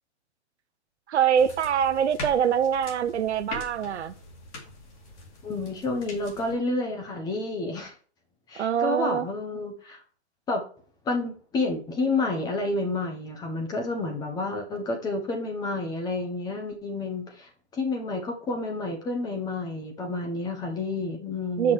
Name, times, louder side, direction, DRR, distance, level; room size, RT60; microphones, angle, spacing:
voice 1, 1.1-4.1 8.6-9.3 21.6-21.7, right 8 dB, 80° right, 0.8 m, -24 dB
sound 1, 1.4-6.5, left 3 dB, 30° left, 2.2 m, -42 dB
voice 2, 5.4-7.9 8.5-10.0 10.5-10.6 11.0-21.7, left 2 dB, 10° left, 1.0 m, -30 dB
6.1 x 5.9 x 4.8 m
hypercardioid pair, 155°, 34 cm